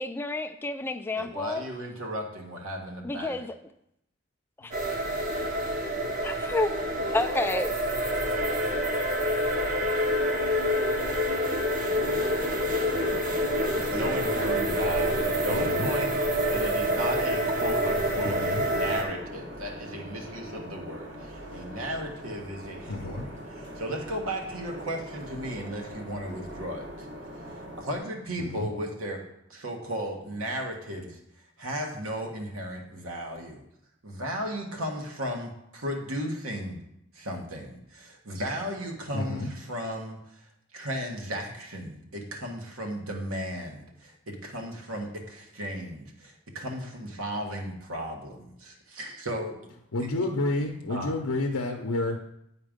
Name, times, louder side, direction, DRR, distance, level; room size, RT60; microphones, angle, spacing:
voice 1, 0.0-1.6 3.0-3.5 4.6-4.7 6.2-6.7 7.1-7.7, left 2 dB, 10° left, 8 dB, 0.3 m, -29 dB
voice 2, 1.1-3.3 13.7-18.4 18.7-27.1 27.5-29.2 29.5-31.2 31.6-33.6 34.0-36.8 37.1-49.6 50.0-50.1 50.9-51.1, equal, 75° right, 1 dB, 1.4 m, -35 dB
sound 1, 4.7-19.0, equal, 40° right, 0.9 m, -27 dB
sound 2, 11.9-28.0, equal, 55° right, 1.4 m, -42 dB
voice 3, 15.5-15.9 18.2-18.6 22.9-23.3 28.4-28.7 39.1-39.5 49.9-52.2, left 2 dB, 80° left, 2 dB, 0.7 m, -30 dB
8.9 x 4.5 x 5.1 m, 0.80 s
head